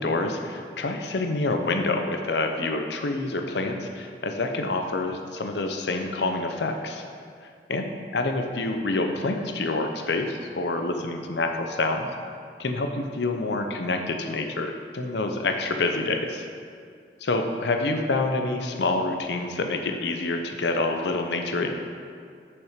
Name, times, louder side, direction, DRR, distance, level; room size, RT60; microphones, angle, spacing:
voice 1, 0.0-7.0 7.7-7.9 8.1-12.1 12.6-16.5 17.2-21.7, left 2 dB, 70° left, 5 dB, 0.7 m, -27 dB
6.4 x 6.0 x 5.1 m, 2.2 s
head